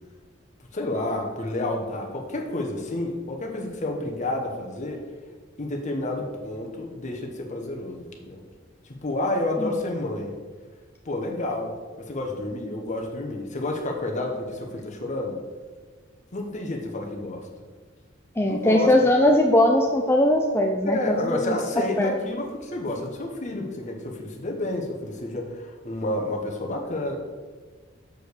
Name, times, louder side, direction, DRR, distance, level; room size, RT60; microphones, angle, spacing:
voice 1, 0.7-5.0 5.6-8.4 9.0-10.3 11.0-15.4 16.3-17.5 18.5-18.9 20.8-27.2, left 2 dB, 35° left, 1 dB, 1.1 m, -30 dB
voice 2, 18.4-21.6 22.0-22.1, left 1 dB, 10° left, 1 dB, 0.5 m, -20 dB
6.5 x 5.1 x 6.6 m, 1.4 s
head